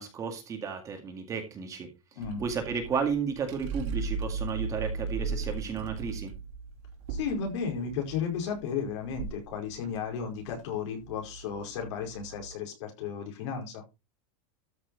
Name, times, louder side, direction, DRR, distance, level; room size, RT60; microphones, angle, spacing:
voice 1, 0.0-1.9 2.4-6.3, right 6 dB, 20° right, 5 dB, 2.1 m, -33 dB
sound 1, 2.2-12.5, right 4 dB, 55° right, 2.8 m, -37 dB
voice 2, 7.1-13.8, left 6 dB, 55° left, 3 dB, 4.9 m, -34 dB
13.5 x 6.1 x 4.0 m, 0.25 s
supercardioid pair, 170°, 17 cm